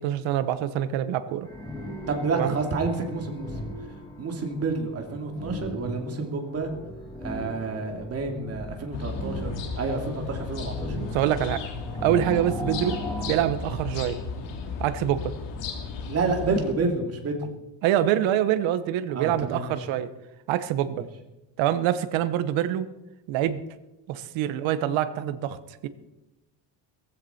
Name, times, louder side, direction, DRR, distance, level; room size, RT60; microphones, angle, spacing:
voice 1, 0.0-1.5 2.3-2.6 11.0-11.6 12.0-13.0 13.3-14.2 14.8-15.3 17.8-20.1 20.5-21.0 21.6-22.9 23.3-23.6 24.1-25.9, right 11 dB, 85° right, 12 dB, 1.3 m, -25 dB
sound 1, 1.4-13.3, left 1 dB, 10° left, 4.4 m, -38 dB
voice 2, 2.1-3.5 4.2-6.7 7.2-11.0 16.1-17.5 19.1-19.7, right 3 dB, 30° right, 3 dB, 2.6 m, -29 dB
sound 2, 8.9-16.7, left 5 dB, 70° left, 2.9 m, -35 dB
18.0 x 15.0 x 4.4 m, 0.97 s
cardioid pair, 180°, 45 cm